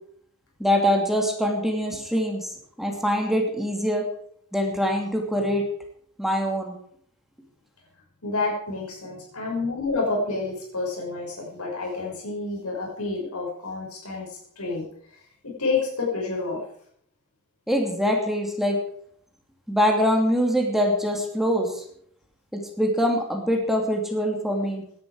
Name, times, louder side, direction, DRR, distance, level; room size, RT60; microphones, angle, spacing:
voice 1, 0.6-2.5 2.8-4.0 4.5-5.6 6.2-6.7 17.7-18.8 19.7-21.7 22.8-24.8, equal, ahead, 2 dB, 2.7 m, -23 dB
voice 2, 8.2-14.3 14.6-14.8 15.4-16.6, left 3 dB, 70° left, -2 dB, 6.0 m, -29 dB
17.0 x 11.0 x 4.9 m, 0.64 s
head